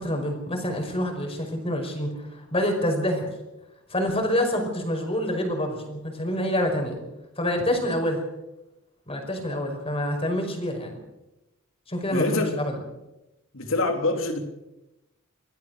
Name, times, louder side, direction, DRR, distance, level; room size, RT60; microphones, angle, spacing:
voice 1, 0.0-3.3 3.9-7.0 7.4-8.2 9.1-11.0 11.9-12.8, equal, 30° left, 3 dB, 5.2 m, -27 dB
voice 2, 12.1-12.5 13.5-14.4, left 2 dB, 70° left, 5 dB, 3.6 m, -25 dB
25.0 x 16.5 x 6.5 m, 0.94 s
head